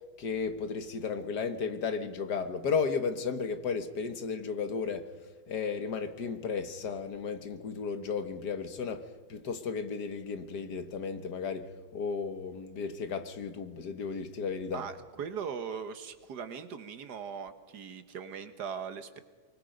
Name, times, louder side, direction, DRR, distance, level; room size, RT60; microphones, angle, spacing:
voice 1, 0.2-5.1 5.5-14.9, left 5 dB, 90° left, 2.0 m, -34 dB
voice 2, 14.7-19.2, right 7 dB, 90° right, 1.8 m, -39 dB
24.0 x 23.5 x 5.3 m
omnidirectional pair, 1.7 m